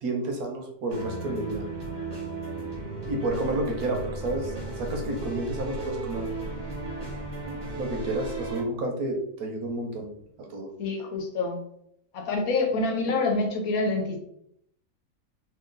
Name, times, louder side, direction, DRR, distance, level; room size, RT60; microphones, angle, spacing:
voice 1, 0.0-1.7 3.0-6.3 7.8-10.1 10.5-10.7, right 2 dB, 80° right, 3 dB, 1.2 m, -30 dB
sound 1, 0.9-8.6, right 3 dB, 20° right, 0.9 m, -36 dB
sound 2, 3.3-8.5, left 1 dB, 50° left, 0.8 m, -41 dB
voice 2, 10.8-11.6 12.1-14.2, left 3 dB, 80° left, 3 dB, 1.2 m, -27 dB
3.0 x 2.8 x 3.8 m, 0.73 s
omnidirectional pair, 1.5 m